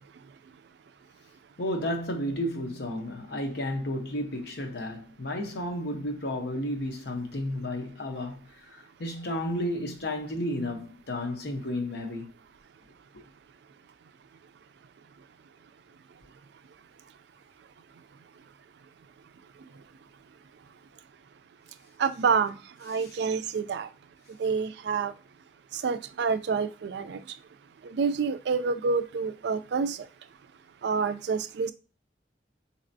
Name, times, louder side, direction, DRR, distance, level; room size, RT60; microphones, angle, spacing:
voice 1, 1.6-12.3 22.9-23.1, left 1 dB, 65° left, 0.8 m, -32 dB
voice 2, 22.0-22.6 22.8-23.9 24.4-25.1 25.7-27.2 27.8-30.0 30.8-31.7, right 5 dB, 65° right, 0.4 m, -28 dB
4.2 x 2.8 x 2.6 m
head